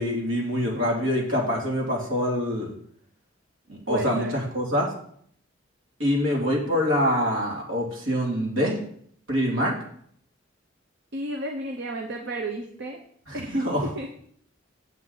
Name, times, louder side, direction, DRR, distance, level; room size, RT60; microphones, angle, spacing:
voice 1, 0.0-2.7 3.7-4.9 6.0-8.8 9.3-9.7 13.3-13.9, equal, 75° right, -2 dB, 2.7 m, -25 dB
voice 2, 3.8-4.4 11.1-13.0 13.3-14.2, right 2 dB, 60° right, 3 dB, 0.8 m, -33 dB
8.3 x 7.7 x 4.0 m, 0.65 s
head